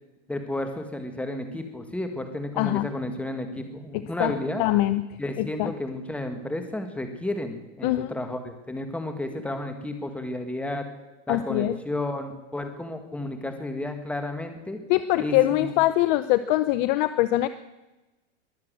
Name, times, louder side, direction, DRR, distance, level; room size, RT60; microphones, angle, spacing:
voice 1, 0.3-4.6 5.2-10.9 11.3-14.8 15.2-15.8, left 1 dB, 5° left, 6 dB, 1.8 m, -32 dB
voice 2, 2.6-2.9 4.2-5.0 5.4-5.7 7.8-8.1 11.3-11.8 14.9-17.5, left 16 dB, 40° left, 13 dB, 0.6 m, -23 dB
22.0 x 7.6 x 7.6 m, 1.1 s
hypercardioid pair, 130°, 36 cm